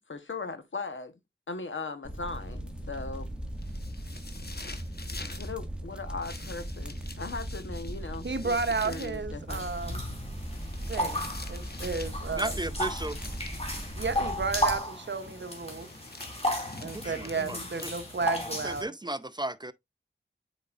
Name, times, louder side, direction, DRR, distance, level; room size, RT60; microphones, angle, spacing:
voice 1, 0.1-1.1 1.5-3.3 5.4-8.5 8.8-9.6 17.3-17.7, left 3 dB, 75° left, 1.1 m, -38 dB
sound 1, 2.0-14.8, right 1 dB, 5° right, 1.9 m, -38 dB
sound 2, 3.6-5.5 6.2-9.2 10.4-12.2 12.9-13.9 15.5-18.3, left 3 dB, 50° left, 1.3 m, -47 dB
voice 2, 8.2-10.1 10.9-12.6 14.0-15.9 16.8-18.9, right 4 dB, 65° right, 0.9 m, -33 dB
sound 3, 9.5-18.8, left 1 dB, 30° left, 2.6 m, -34 dB
voice 3, 12.4-13.2 16.9-17.9 18.6-19.7, right 2 dB, 20° right, 0.5 m, -35 dB
8.1 x 5.2 x 2.5 m
wide cardioid pair, 50°, 20 cm